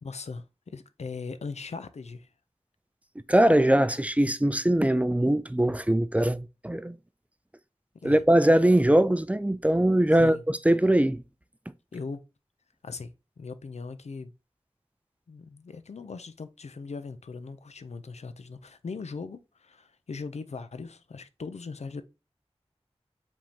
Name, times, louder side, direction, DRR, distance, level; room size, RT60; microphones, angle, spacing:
voice 1, 0.0-2.3 8.0-8.2 10.2-10.4 11.9-12.2 12.8-14.3 15.3-22.0, left 4 dB, 85° left, 0.4 m, -39 dB
voice 2, 3.3-7.0 8.0-11.2, right 1 dB, 10° right, 0.4 m, -22 dB
4.9 x 3.6 x 2.7 m
wide cardioid pair, 45°, 11 cm